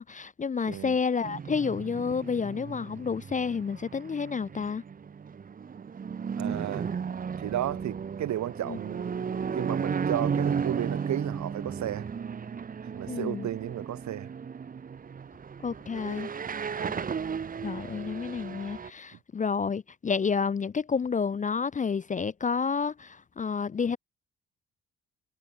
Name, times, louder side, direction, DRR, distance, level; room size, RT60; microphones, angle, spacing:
voice 1, 0.0-4.8 8.7-8.8 13.1-13.5 15.6-16.3 17.6-24.0, left 5 dB, 25° left, 0.5 m, -30 dB
voice 2, 0.7-1.0 6.4-6.9 7.4-9.1 9.5-12.1 12.8-14.3 16.8-17.1, right 12 dB, 65° right, 1.4 m, -33 dB
sound 1, 1.2-18.9, right 6 dB, 30° right, 0.7 m, -34 dB
cardioid pair, 90°, 30 cm